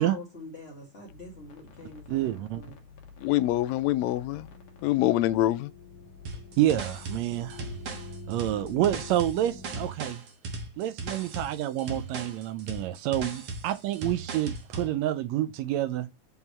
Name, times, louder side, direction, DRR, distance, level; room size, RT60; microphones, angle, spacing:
voice 1, 0.0-2.8, left 2 dB, 30° left, 1.3 m, -44 dB
sound 1, 1.1-9.8, left 4 dB, 60° left, 2.1 m, -47 dB
voice 2, 2.1-2.6 6.6-7.6 8.3-10.2 10.8-16.1, right 13 dB, 80° right, 1.7 m, -28 dB
voice 3, 3.2-4.5 4.8-5.7, left 15 dB, 80° left, 1.7 m, -25 dB
sound 2, 6.3-14.9, right 3 dB, 60° right, 2.1 m, -38 dB
6.1 x 3.7 x 5.4 m
omnidirectional pair, 3.3 m